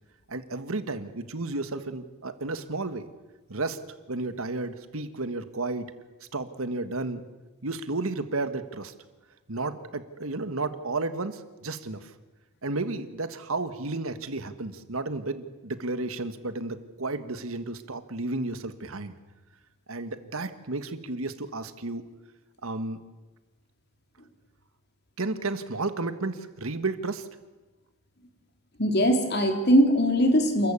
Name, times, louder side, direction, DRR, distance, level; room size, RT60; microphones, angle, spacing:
voice 1, 0.3-3.1 3.5-3.8 4.1-5.9 6.3-7.2 7.6-8.9 9.5-12.1 12.6-19.1 19.9-22.0 22.6-23.0 25.2-27.3, right 3 dB, 75° right, 11 dB, 1.5 m, -32 dB
voice 2, 28.8-30.7, equal, 50° left, 5 dB, 3.4 m, -21 dB
29.0 x 14.0 x 8.4 m, 1.2 s
head